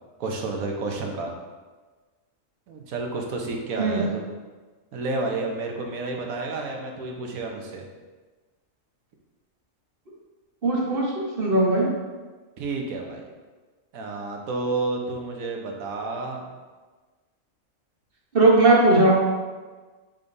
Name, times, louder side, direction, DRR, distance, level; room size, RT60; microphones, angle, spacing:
voice 1, 0.2-1.3 2.7-4.3 4.9-7.8 12.6-13.3 13.9-16.5, right 3 dB, 90° right, 1 dB, 1.3 m, -30 dB
voice 2, 10.6-11.9 18.3-19.1, right 2 dB, 45° right, -4 dB, 1.4 m, -18 dB
7.2 x 5.1 x 2.7 m, 1.3 s
omnidirectional pair, 1.4 m